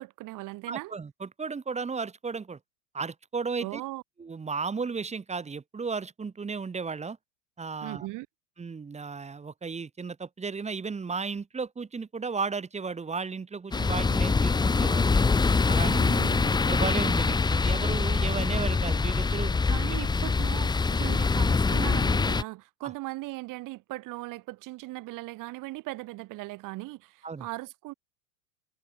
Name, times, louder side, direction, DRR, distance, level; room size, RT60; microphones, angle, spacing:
voice 1, 0.0-0.9 3.6-4.0 7.8-8.3 15.8-16.5 19.7-27.9, right 20 dB, 40° right, 4.6 m, -38 dB
voice 2, 0.7-2.6 2.9-3.8 4.2-7.2 7.6-8.1 8.6-15.3 15.7-16.4 16.7-19.5 21.0-21.1 22.8-22.9 27.2-27.5, right 5 dB, 15° right, 2.7 m, -34 dB
sound 1, 13.7-22.4, left 4 dB, 10° left, 1.2 m, -24 dB
figure-of-eight pair, 95°, 47 cm